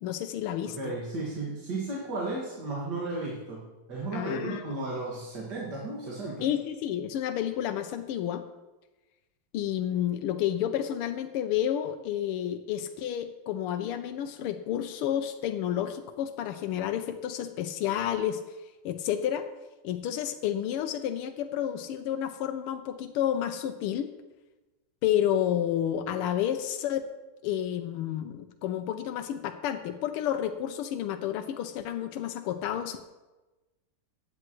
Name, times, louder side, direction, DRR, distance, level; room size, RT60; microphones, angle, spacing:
voice 1, 0.0-0.8 4.1-4.6 6.4-8.4 9.5-18.4 18.8-19.5 19.8-24.1 25.0-27.1 27.4-33.0, left 10 dB, 85° left, 7 dB, 1.6 m, -30 dB
voice 2, 0.6-6.5, right 2 dB, 50° right, -5 dB, 2.3 m, -34 dB
15.5 x 9.9 x 3.1 m, 1.1 s
omnidirectional pair, 2.4 m